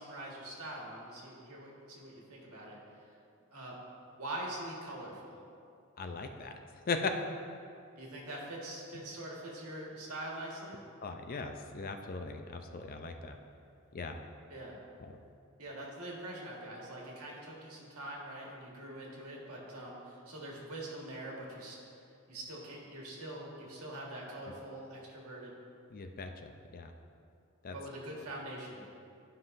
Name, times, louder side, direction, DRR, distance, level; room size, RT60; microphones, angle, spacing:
voice 1, 0.0-2.8 3.1-3.2 3.5-3.8 4.2-5.4 8.0-10.8 14.5-14.8 15.6-21.8 22.3-25.5 27.7-29.0, right 1 dB, 85° right, -3 dB, 1.6 m, -44 dB
voice 2, 6.0-6.5 6.9-7.1 11.0-13.3 13.9-14.2 25.9-26.9 27.6-27.7, left 4 dB, 40° left, 5 dB, 0.4 m, -38 dB
12.0 x 5.6 x 2.6 m, 2.5 s
head